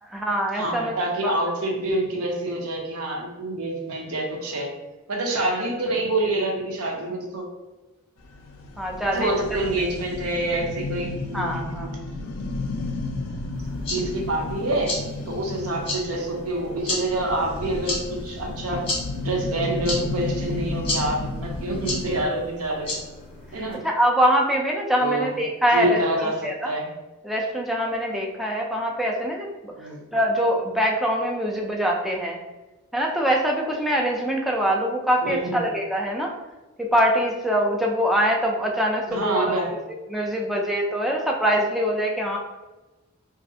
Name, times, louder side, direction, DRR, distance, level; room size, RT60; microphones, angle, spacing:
voice 1, 0.0-0.9 1.2-1.3 8.8-9.4 11.3-11.9 23.8-26.7 27.2-29.7 30.1-32.4 32.9-36.3 36.8-39.5 40.1-42.4, equal, ahead, -1 dB, 0.4 m, -23 dB
voice 2, 0.5-4.7 5.1-7.5 9.1-12.4 13.9-14.9 15.3-18.8 19.2-23.0 23.5-23.8 25.0-25.3 25.7-26.9 29.8-30.0 35.2-35.7 39.1-39.8, right 1 dB, 80° right, 1 dB, 0.7 m, -27 dB
sound 1, 8.2-22.3, left 2 dB, 70° left, 0.4 m, -33 dB
sound 2, 13.5-23.7, left 2 dB, 25° left, 1.0 m, -34 dB
3.1 x 2.4 x 2.7 m, 1.1 s
head